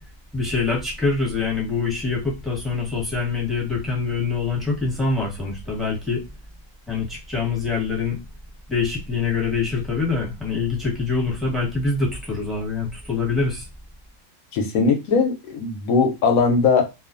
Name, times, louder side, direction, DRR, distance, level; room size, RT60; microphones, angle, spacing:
voice 1, 0.3-6.2 6.9-8.2 8.7-13.6, left 4 dB, ahead, -2 dB, 0.8 m, -24 dB
voice 2, 14.5-16.9, left 4 dB, 70° left, 4 dB, 0.9 m, -19 dB
2.5 x 2.4 x 2.5 m, 0.25 s
omnidirectional pair, 1.7 m